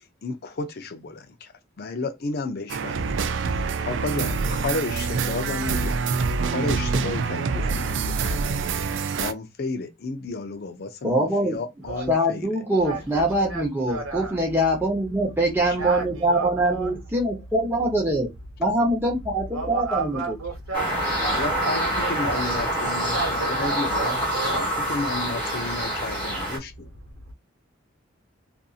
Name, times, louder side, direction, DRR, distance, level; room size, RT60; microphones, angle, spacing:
voice 1, 0.0-1.5 1.8-6.0 6.4-12.5 15.6-15.9 21.3-24.2 24.5-26.9, left 3 dB, 50° left, 0.4 m, -33 dB
sound 1, 2.7-9.3, right 4 dB, 60° right, 0.3 m, -26 dB
voice 2, 11.0-11.6 12.1-18.3 18.6-20.3, right 1 dB, 10° right, 0.7 m, -23 dB
voice 3, 11.8-12.1 12.8-14.4 15.8-17.0 19.5-22.4 23.0-24.7 27.3-27.4, right 3 dB, 85° right, 1.0 m, -32 dB
sound 2, 20.7-26.6, right 1 dB, 5° left, 1.2 m, -26 dB
2.6 x 2.6 x 2.3 m
head